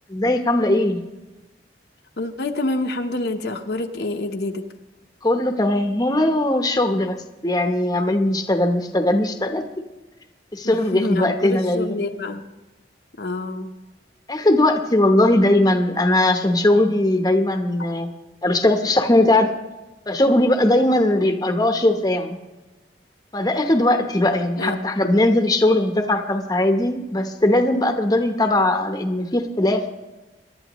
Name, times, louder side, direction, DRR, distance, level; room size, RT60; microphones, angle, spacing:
voice 1, 0.1-1.0 5.2-9.6 10.5-12.0 14.3-18.1 18.4-19.5 20.1-22.4 23.3-29.8, left 1 dB, 20° left, 5 dB, 0.9 m, -19 dB
voice 2, 2.2-4.6 10.6-12.4 13.2-13.7 24.6-25.1, left 2 dB, 65° left, 4 dB, 0.9 m, -27 dB
22.0 x 11.5 x 3.0 m, 1.1 s
head